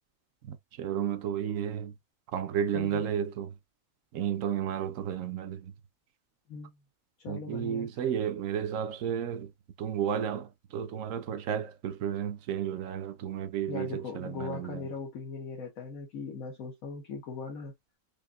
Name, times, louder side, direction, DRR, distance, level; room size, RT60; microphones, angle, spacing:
voice 1, 0.4-1.9 2.3-3.5 4.1-5.7 7.3-9.5 9.8-14.9, right 9 dB, 75° right, 1.0 m, -32 dB
voice 2, 6.5-6.8 7.2-8.0 13.7-17.7, left 4 dB, 90° left, 1.6 m, -39 dB
4.9 x 2.6 x 2.3 m
omnidirectional pair, 1.4 m